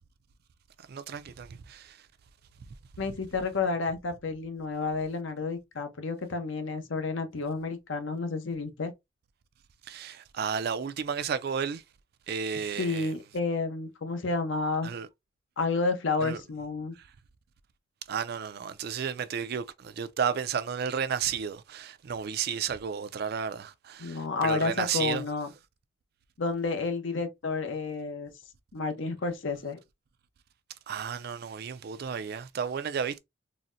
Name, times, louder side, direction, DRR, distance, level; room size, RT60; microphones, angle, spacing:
voice 1, 0.9-2.0 9.9-11.8 12.3-13.1 14.8-15.1 16.2-16.4 18.1-25.2 30.9-33.2, right 7 dB, 50° right, 0.4 m, -32 dB
voice 2, 3.0-8.9 12.8-14.9 15.6-16.9 24.0-25.5 26.4-28.3 28.7-29.8, left 4 dB, 75° left, 0.7 m, -30 dB
4.0 x 2.1 x 2.5 m
head